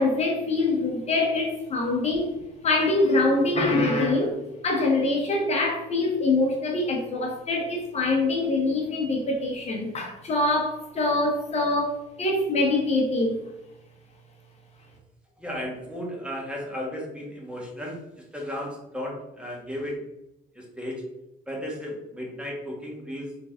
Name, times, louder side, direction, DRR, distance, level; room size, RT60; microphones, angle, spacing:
voice 1, 0.0-2.3 2.6-4.4 4.6-13.4, left 2 dB, 40° left, 0 dB, 1.0 m, -24 dB
voice 2, 15.4-18.0 18.3-20.0 20.5-21.0 21.5-23.3, equal, 5° right, -2 dB, 1.3 m, -34 dB
3.9 x 3.5 x 3.6 m, 0.91 s
cardioid pair, 110°, 17 cm